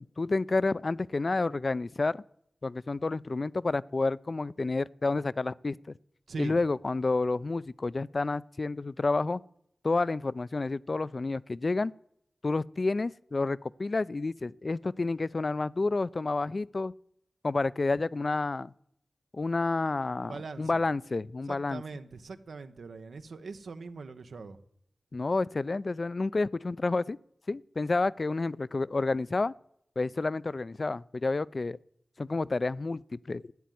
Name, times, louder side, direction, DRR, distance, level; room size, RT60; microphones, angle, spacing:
voice 1, 0.0-2.2 2.6-5.8 6.4-9.4 9.8-11.9 12.4-16.9 17.4-18.7 19.3-20.3 20.6-21.8 25.1-27.2 27.5-29.5 30.0-31.8 32.2-33.5, left 3 dB, 55° left, 0.4 m, -29 dB
voice 2, 20.2-20.8 21.4-24.6, right 4 dB, 90° right, 1.1 m, -42 dB
13.0 x 9.4 x 9.3 m
cardioid pair, 40°, 0 cm